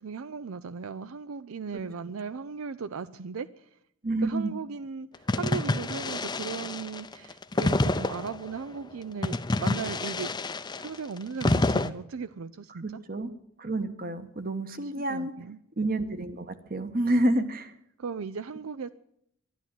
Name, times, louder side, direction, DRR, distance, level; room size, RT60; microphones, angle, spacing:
voice 1, 0.0-3.7 4.2-10.3 10.8-13.0 14.8-15.6 18.0-18.9, right 5 dB, 80° right, 14 dB, 0.5 m, -37 dB
voice 2, 4.0-4.5 12.8-13.3 13.6-15.3 15.8-17.7, right 1 dB, 45° right, 10 dB, 1.2 m, -29 dB
sound 1, 5.3-8.5 9.2-11.9, left 2 dB, 20° left, 0.5 m, -28 dB
11.5 x 11.5 x 9.0 m, 0.71 s
head